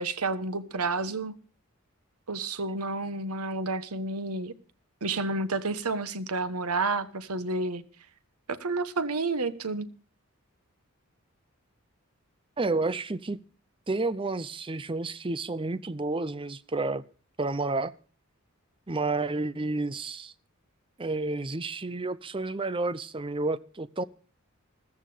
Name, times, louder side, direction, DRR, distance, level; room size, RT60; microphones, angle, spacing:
voice 1, 0.0-1.3 2.3-4.5 5.0-7.8 8.6-9.9, right 3 dB, 85° right, 1.2 m, -30 dB
voice 2, 12.6-13.4 13.9-17.0 17.4-17.9 18.9-20.3 21.0-24.0, right 3 dB, 25° right, 0.6 m, -30 dB
14.5 x 14.0 x 5.0 m
head